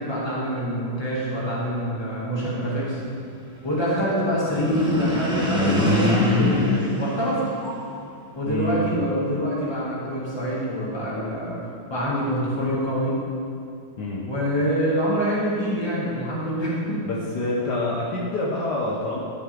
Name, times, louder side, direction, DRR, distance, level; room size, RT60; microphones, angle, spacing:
voice 1, 0.0-3.0 3.6-7.4 8.3-11.6 11.9-13.1 14.3-17.0, equal, 15° left, -7 dB, 2.2 m, -25 dB
sound 1, 4.4-8.0, left 1 dB, 5° right, 1.1 m, -23 dB
voice 2, 8.5-9.0 14.0-14.3 17.1-19.2, left 1 dB, 65° left, -4 dB, 1.5 m, -27 dB
12.5 x 6.6 x 3.6 m, 2.4 s
omnidirectional pair, 2.1 m